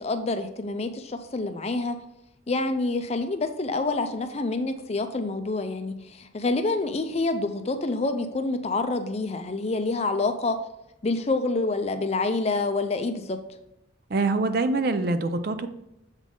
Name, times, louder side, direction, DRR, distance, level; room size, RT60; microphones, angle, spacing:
voice 1, 0.0-2.0 2.5-10.6 11.0-13.4, left 3 dB, 30° left, 8 dB, 0.5 m, -27 dB
voice 2, 14.1-15.7, right 3 dB, 50° right, 10 dB, 0.4 m, -24 dB
7.2 x 3.9 x 3.7 m, 0.86 s
head